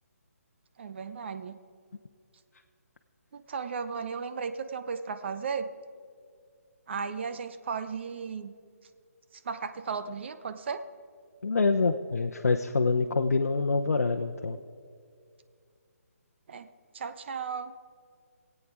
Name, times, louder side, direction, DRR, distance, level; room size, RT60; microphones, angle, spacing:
voice 1, 0.8-1.6 3.3-5.7 6.9-8.5 9.4-10.8 16.5-16.7 16.9-17.7, right 5 dB, 45° right, 10 dB, 0.7 m, -35 dB
voice 2, 11.4-14.6, left 4 dB, 90° left, 4 dB, 0.7 m, -26 dB
23.0 x 8.5 x 4.8 m, 2.2 s
hypercardioid pair, 160°, 8 cm